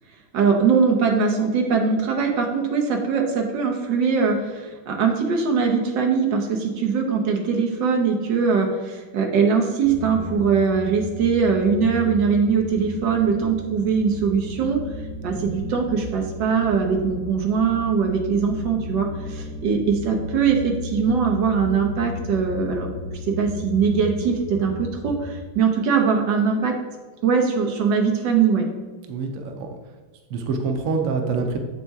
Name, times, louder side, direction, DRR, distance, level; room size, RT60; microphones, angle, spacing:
voice 1, 0.3-14.8 15.2-22.9 23.3-26.8 27.2-28.7, right 5 dB, 65° right, 1 dB, 1.4 m, -21 dB
sound 1, 9.8-25.4, left 2 dB, 15° right, 1.4 m, -34 dB
voice 2, 29.1-29.7 30.3-31.6, right 4 dB, 90° right, 4 dB, 0.7 m, -26 dB
7.5 x 4.2 x 3.5 m, 1.4 s
omnidirectional pair, 2.3 m